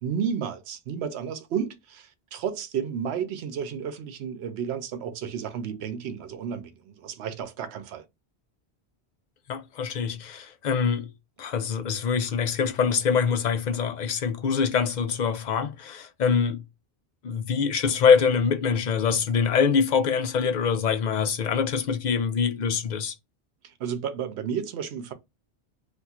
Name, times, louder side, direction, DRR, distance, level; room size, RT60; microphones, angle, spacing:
voice 1, 0.0-8.1 23.6-25.1, right 7 dB, 85° right, 0.9 m, -32 dB
voice 2, 9.5-11.1 11.4-16.6 17.2-23.1, left 6 dB, 55° left, 0.5 m, -24 dB
2.5 x 2.4 x 4.1 m
omnidirectional pair, 1.1 m